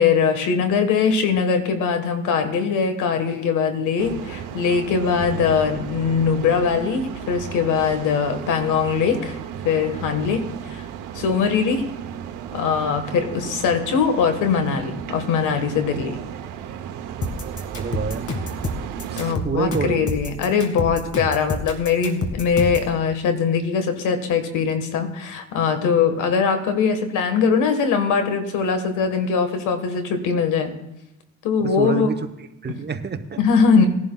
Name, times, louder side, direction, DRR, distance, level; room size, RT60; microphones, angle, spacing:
voice 1, 0.0-9.4 9.6-10.9 11.1-11.9 12.5-16.2 19.2-30.7 31.4-32.1 33.4-33.9, left 6 dB, 85° left, 8 dB, 1.4 m, -21 dB
sound 1, 4.0-19.4, right 9 dB, 90° right, 0.8 m, -34 dB
sound 2, 17.2-22.9, left 2 dB, 50° left, 2.0 m, -28 dB
voice 2, 17.7-18.3 19.1-20.0 31.6-32.2 32.6-33.4, right 5 dB, 35° right, 9 dB, 0.9 m, -27 dB
19.5 x 11.0 x 2.3 m, 0.87 s
cardioid pair, 90°, 30 cm